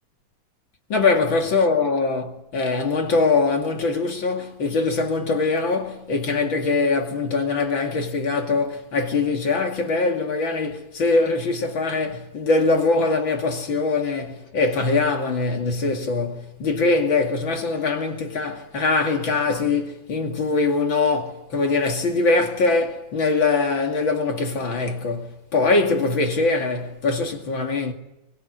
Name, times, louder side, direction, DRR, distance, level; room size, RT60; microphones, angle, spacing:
voice 1, 0.9-27.9, left 3 dB, 40° left, 2.8 m, -22 dB
24.5 x 21.0 x 9.6 m
omnidirectional pair, 3.4 m